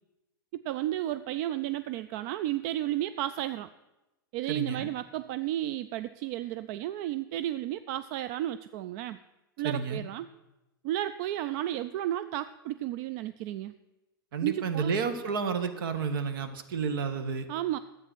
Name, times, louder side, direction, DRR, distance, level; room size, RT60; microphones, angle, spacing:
voice 1, 0.6-3.7 4.3-9.2 9.6-10.3 10.8-13.8 14.4-14.9 17.5-17.8, right 13 dB, 50° right, 13 dB, 0.4 m, -33 dB
voice 2, 4.5-4.9 9.6-10.0 14.3-17.5, right 5 dB, 65° right, 9 dB, 1.2 m, -31 dB
11.0 x 8.3 x 6.1 m, 1.0 s
hypercardioid pair, 100°, 12 cm